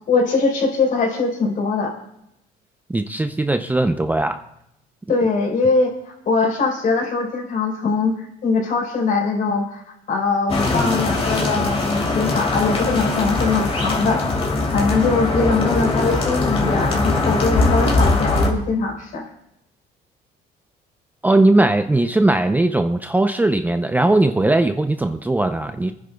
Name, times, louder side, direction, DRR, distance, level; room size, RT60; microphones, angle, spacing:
voice 1, 0.1-2.0 5.1-9.8 10.1-14.2 14.7-19.2, left 4 dB, 55° left, 0 dB, 4.2 m, -21 dB
voice 2, 2.9-4.4 21.2-25.9, right 2 dB, 10° right, 7 dB, 0.5 m, -19 dB
sound 1, 10.5-18.5, left 2 dB, 35° left, 2.9 m, -21 dB
30.0 x 10.0 x 2.3 m, 0.82 s
cardioid pair, 110°, 17 cm